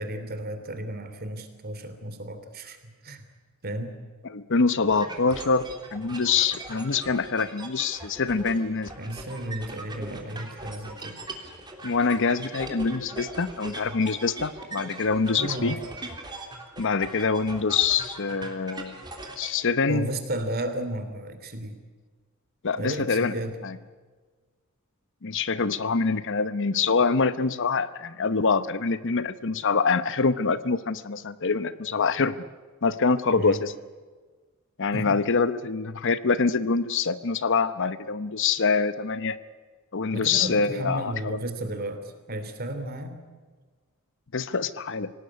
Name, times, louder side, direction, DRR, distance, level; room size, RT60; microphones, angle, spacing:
voice 1, 0.0-3.2 3.6-3.9 9.0-11.2 15.4-15.8 19.9-21.8 22.8-23.6 33.3-33.6 34.9-35.2 40.1-43.2, right 1 dB, 45° right, 9 dB, 3.0 m, -33 dB
voice 2, 4.3-8.9 11.8-15.8 16.8-19.0 19.4-20.1 22.6-23.3 23.6-23.8 25.2-32.4 32.8-33.7 34.8-39.4 39.9-41.4 44.3-45.1, left 4 dB, 60° left, 14 dB, 0.9 m, -25 dB
sound 1, 4.9-19.5, right 2 dB, 20° right, 3.3 m, -40 dB
25.5 x 18.0 x 9.8 m, 1.4 s
head